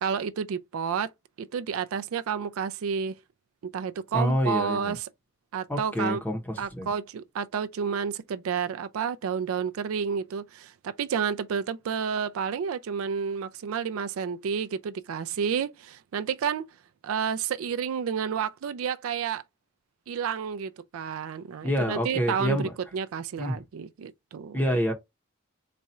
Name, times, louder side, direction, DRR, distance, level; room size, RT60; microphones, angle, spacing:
voice 1, 0.0-1.1 1.4-3.2 3.7-5.1 5.5-6.2 6.6-16.7 17.0-19.4 20.1-24.6, right 7 dB, 85° right, 0.4 m, -30 dB
voice 2, 4.1-5.0 5.7-6.4 6.7-6.9 21.6-22.7 23.4-23.6 24.5-24.9, equal, 10° left, 0.8 m, -27 dB
4.1 x 2.4 x 4.2 m
head